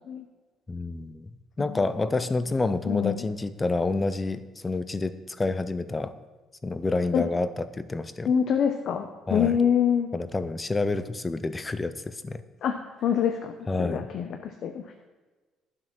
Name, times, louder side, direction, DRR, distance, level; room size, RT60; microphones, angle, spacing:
voice 1, 0.7-1.3 1.6-6.1 6.6-8.3 9.3-9.6 10.1-12.4 13.7-14.1, left 3 dB, 15° left, 13 dB, 0.5 m, -28 dB
voice 2, 2.9-3.2 7.1-7.2 8.2-10.1 12.6-14.8, left 8 dB, 50° left, 6 dB, 0.7 m, -26 dB
12.0 x 7.5 x 6.0 m, 1.3 s
cardioid pair, 165°, 0 cm